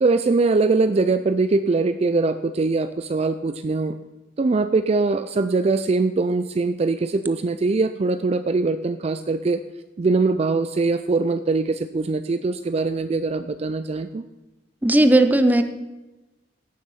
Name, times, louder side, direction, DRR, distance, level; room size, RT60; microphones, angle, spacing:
voice 1, 0.0-4.0 4.4-9.6 10.0-14.2, right 3 dB, 35° right, 11 dB, 0.4 m, -22 dB
voice 2, 14.8-15.6, right 1 dB, 10° right, 9 dB, 0.7 m, -16 dB
16.0 x 6.6 x 5.7 m, 1.1 s
head